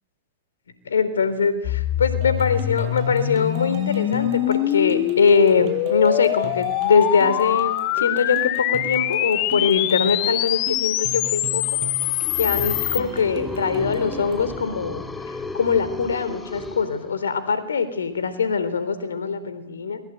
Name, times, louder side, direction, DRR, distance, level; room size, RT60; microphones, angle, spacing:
voice 1, 0.9-11.6 12.4-15.1 15.5-20.0, left 5 dB, 85° left, 12 dB, 3.8 m, -22 dB
sound 1, 1.6-13.0, left 16 dB, 45° left, 1.4 m, -24 dB
sound 2, 2.2-14.5, right 6 dB, 45° right, 7.4 m, -39 dB
sound 3, 11.6-17.5, left 3 dB, 10° left, 2.7 m, -35 dB
28.5 x 22.0 x 9.2 m, 1.0 s
hypercardioid pair, 115°, 0 cm